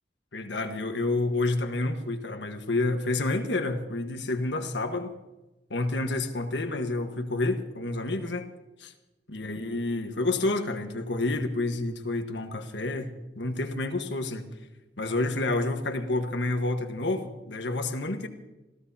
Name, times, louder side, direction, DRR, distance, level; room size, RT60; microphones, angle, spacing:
voice 1, 0.3-5.1 5.7-8.5 8.8-8.9 9.3-14.4 15.0-18.3, left 2 dB, 90° left, 6 dB, 1.5 m, -29 dB
27.0 x 16.5 x 2.9 m, 1.1 s
head